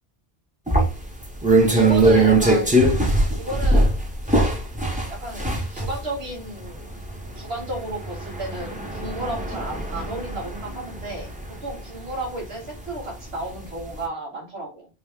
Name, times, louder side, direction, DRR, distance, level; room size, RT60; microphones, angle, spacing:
sound 1, 0.7-13.3 13.7-13.9, right 2 dB, 10° right, 0.7 m, -21 dB
voice 1, 1.7-2.7 3.0-4.5 5.1-6.9 7.3-11.3 11.6-14.9, right 1 dB, 85° right, 0 dB, 1.7 m, -33 dB
3.1 x 2.7 x 3.5 m, 0.32 s
omnidirectional pair, 1.0 m